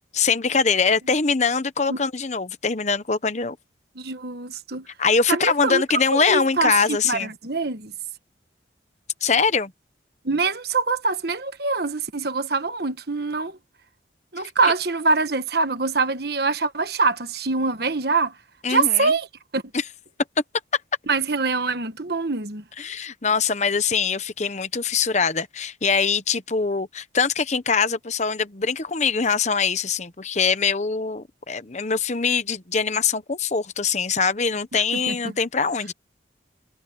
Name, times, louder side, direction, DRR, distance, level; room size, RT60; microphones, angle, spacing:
voice 1, 0.1-3.6 5.0-7.3 9.2-9.7 18.6-19.1 19.7-19.8 22.8-35.9, left 5 dB, 35° left, 0.9 m, -23 dB
voice 2, 4.0-4.9 5.3-7.9 10.2-13.6 14.3-18.3 18.7-19.3 19.5-19.6 21.1-22.6 34.7-34.8 35.1-35.2, right 4 dB, 55° right, 1.3 m, -24 dB
head